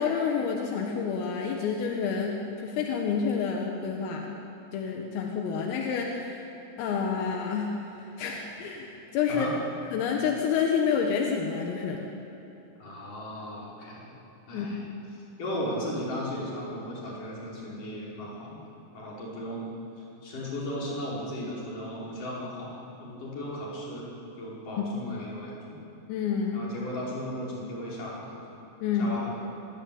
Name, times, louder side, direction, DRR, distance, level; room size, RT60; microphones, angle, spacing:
voice 1, 0.0-4.3 4.7-6.4 6.8-9.5 9.9-12.0 14.5-15.0 24.8-24.9 26.1-26.7 28.8-29.2, left 6 dB, 80° left, 1 dB, 4.2 m, -29 dB
voice 2, 12.8-14.2 14.5-14.8 15.4-18.6 18.9-19.7 20.0-24.1 24.4-25.8 26.5-28.4 29.0-29.5, equal, 40° left, -5 dB, 6.9 m, -36 dB
25.5 x 23.0 x 8.8 m, 3.0 s
omnidirectional pair, 5.9 m